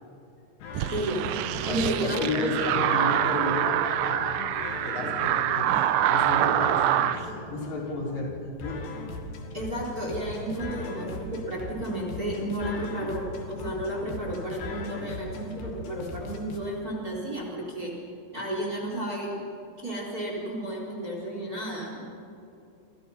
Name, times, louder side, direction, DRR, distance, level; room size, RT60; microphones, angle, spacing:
sound 1, 0.6-16.6, left 3 dB, 85° left, 4.4 m, -40 dB
sound 2, 0.7-7.2, right 12 dB, 85° right, 1.8 m, -26 dB
voice 1, 0.9-1.2 1.6-3.1 9.5-17.9 18.3-19.4 19.8-22.1, right 1 dB, 20° right, -1 dB, 3.9 m, -32 dB
voice 2, 1.5-8.3 8.6-8.9, left 2 dB, 45° left, -3 dB, 5.0 m, -32 dB
29.5 x 26.5 x 5.6 m, 2.9 s
omnidirectional pair, 4.7 m